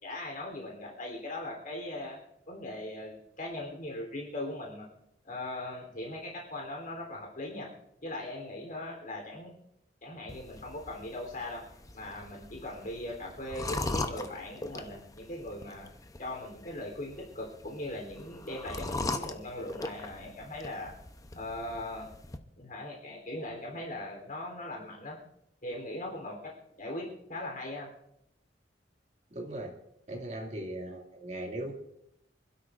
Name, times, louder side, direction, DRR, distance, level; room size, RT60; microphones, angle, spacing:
voice 1, 0.0-2.2 2.5-4.9 5.2-7.7 8.0-9.5 10.0-11.6 11.9-15.9 16.2-20.9 21.3-22.1 22.6-25.2 25.6-26.5 26.8-27.9, left 1 dB, 45° left, -1 dB, 3.4 m, -39 dB
sound 1, 10.3-22.4, left 2 dB, 20° left, 0.7 m, -40 dB
voice 2, 29.3-29.7 30.1-31.7, right 1 dB, 40° right, 1 dB, 2.3 m, -38 dB
27.0 x 12.5 x 2.5 m, 0.79 s
head